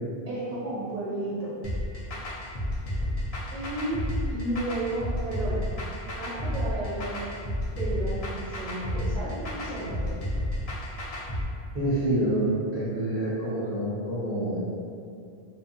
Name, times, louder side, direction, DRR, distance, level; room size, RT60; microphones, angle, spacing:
voice 1, 0.3-1.5 3.5-4.0 4.3-5.6 6.2-7.2 7.8-10.1, right 1 dB, 45° right, -8 dB, 0.9 m, -33 dB
sound 1, 1.6-11.4, left 1 dB, 50° left, 0.4 m, -31 dB
voice 2, 11.7-14.6, right 1 dB, 15° right, -13 dB, 0.7 m, -27 dB
2.5 x 2.3 x 2.6 m, 2.4 s
omnidirectional pair, 1.0 m